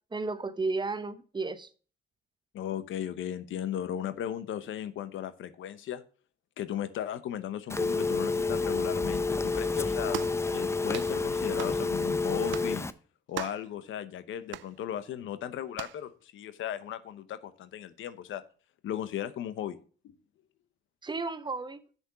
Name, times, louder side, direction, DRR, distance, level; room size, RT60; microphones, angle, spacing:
voice 1, 0.1-1.7 21.0-21.8, right 3 dB, 25° right, 0.9 m, -33 dB
voice 2, 2.5-6.0 6.6-10.2 10.5-12.9 13.3-18.4 18.8-19.8 20.0-20.1, left 10 dB, 75° left, 1.0 m, -36 dB
Telephone, 7.7-12.9, left 3 dB, 15° left, 0.7 m, -29 dB
sound 1, 10.1-10.4 10.9-11.1 11.6-11.8 12.5-12.7 13.3-13.7 14.5-14.7 15.7-16.0, right 15 dB, 70° right, 0.4 m, -38 dB
7.4 x 6.8 x 5.9 m
cardioid pair, 90°, 20 cm